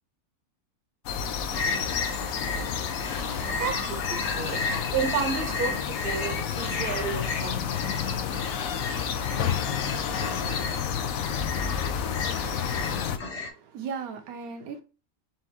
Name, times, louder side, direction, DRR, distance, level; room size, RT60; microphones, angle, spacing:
sound 1, 1.1-13.2, left 7 dB, 70° left, 1.0 m, -30 dB
sound 2, 1.5-13.5, left 3 dB, 50° left, 1.3 m, -35 dB
sound 3, 2.8-7.3, left 3 dB, 30° left, 0.8 m, -44 dB
voice 1, 3.4-4.6 4.9-7.7, right 6 dB, 45° right, 1.0 m, -31 dB
voice 2, 12.9-14.8, right 6 dB, 70° right, 1.4 m, -38 dB
4.4 x 3.6 x 2.8 m
omnidirectional pair, 1.6 m